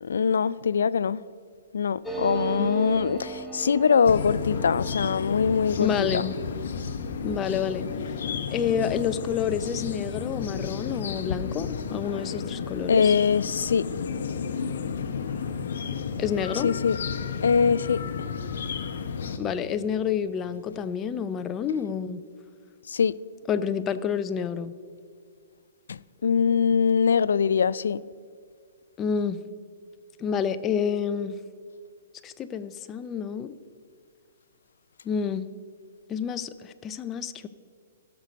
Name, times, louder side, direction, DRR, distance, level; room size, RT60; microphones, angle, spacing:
voice 1, 0.0-1.2 1.7-6.3 12.9-13.9 16.6-17.0 17.4-18.0 22.9-23.2 25.9-28.0, left 6 dB, 85° left, 0.3 m, -23 dB
sound 1, 2.0-11.2 11.5-11.6 11.8-12.4, right 6 dB, 5° right, 0.9 m, -39 dB
sound 2, 4.0-19.4, left 6 dB, 65° left, 0.9 m, -32 dB
voice 2, 5.8-6.4 7.2-7.8 8.5-13.1 16.2-16.7 19.4-22.2 23.5-24.7 29.0-29.4 30.2-31.4 32.2-33.6 35.0-35.5 36.1-37.5, left 7 dB, 20° left, 0.4 m, -29 dB
15.5 x 6.5 x 5.2 m
hypercardioid pair, 155°, 0 cm